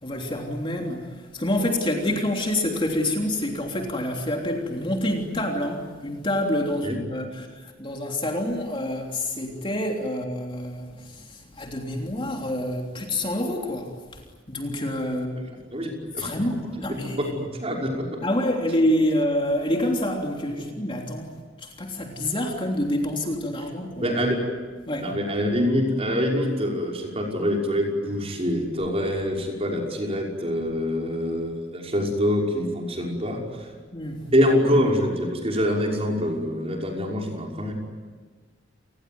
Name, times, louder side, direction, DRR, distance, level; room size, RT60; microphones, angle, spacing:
voice 1, 0.0-14.2 14.5-15.4 16.2-17.3 18.2-24.2 24.9-25.1 33.9-34.3, left 1 dB, 25° left, 1 dB, 3.3 m, -27 dB
voice 2, 15.4-16.3 17.2-18.2 20.6-20.7 24.0-24.4 25.0-33.7 34.3-37.7, equal, 30° right, 0 dB, 5.9 m, -25 dB
30.0 x 20.0 x 9.6 m, 1.4 s
head